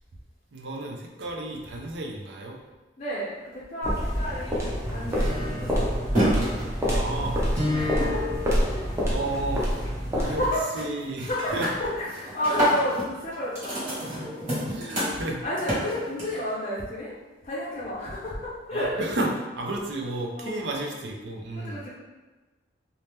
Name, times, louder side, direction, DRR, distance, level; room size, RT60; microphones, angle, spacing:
voice 1, 0.5-2.6 6.3-6.5 6.9-7.5 9.1-9.7 10.1-10.4 10.7-11.7 14.7-15.4 18.7-21.8, right 2 dB, 65° right, 0 dB, 0.5 m, -32 dB
voice 2, 3.0-5.8 7.7-8.4 8.7-8.8 10.1-10.6 11.2-13.8 15.4-17.1 17.4-19.1 20.4-20.6 21.6-21.9, equal, 35° left, -8 dB, 0.5 m, -31 dB
sound 1, 3.8-10.6, equal, 15° right, 0.5 m, -27 dB
sound 2, 4.8-9.3 9.7-10.1 10.4-10.9 11.2-16.5, equal, 45° right, 1.3 m, -30 dB
2.8 x 2.0 x 3.3 m, 1.2 s
head